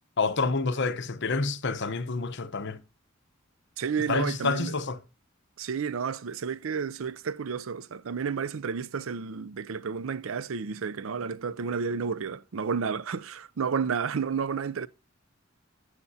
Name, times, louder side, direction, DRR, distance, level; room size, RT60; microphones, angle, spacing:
voice 1, 0.2-2.8 4.1-5.0, left 4 dB, 60° left, 0.9 m, -28 dB
voice 2, 3.8-4.7 5.6-14.9, right 6 dB, 75° right, 0.5 m, -31 dB
14.5 x 8.2 x 2.7 m
head